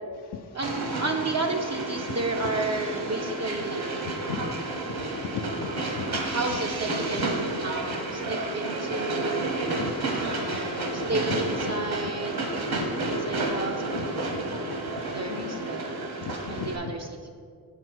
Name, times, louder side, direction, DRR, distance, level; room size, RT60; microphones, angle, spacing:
voice 1, 0.5-4.7 5.6-5.7 6.2-9.5 10.2-12.5 13.0-14.2 15.1-15.9 16.4-17.3, right 3 dB, 40° right, 2 dB, 0.5 m, -32 dB
Train, 0.6-16.8, right 2 dB, 60° right, 1.1 m, -31 dB
voice 2, 5.3-6.4 9.8-10.5 12.7-13.1 14.0-14.1 14.3-14.4 14.7-15.6 16.2-16.9, left 8 dB, 75° left, 5 dB, 0.5 m, -38 dB
7.0 x 4.4 x 6.2 m, 2.2 s
wide cardioid pair, 130°, 41 cm